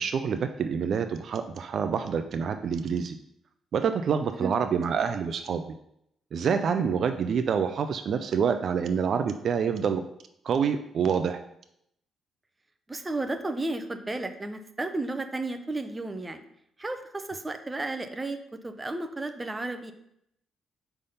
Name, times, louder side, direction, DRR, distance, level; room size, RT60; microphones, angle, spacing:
voice 1, 0.0-3.2 3.7-5.6 6.3-10.0 10.4-11.4, right 6 dB, 60° right, 8 dB, 0.4 m, -27 dB
voice 2, 12.9-16.4 16.8-19.9, right 2 dB, 20° right, 7 dB, 0.6 m, -33 dB
5.4 x 3.5 x 5.6 m, 0.76 s
cardioid pair, 90°, 0 cm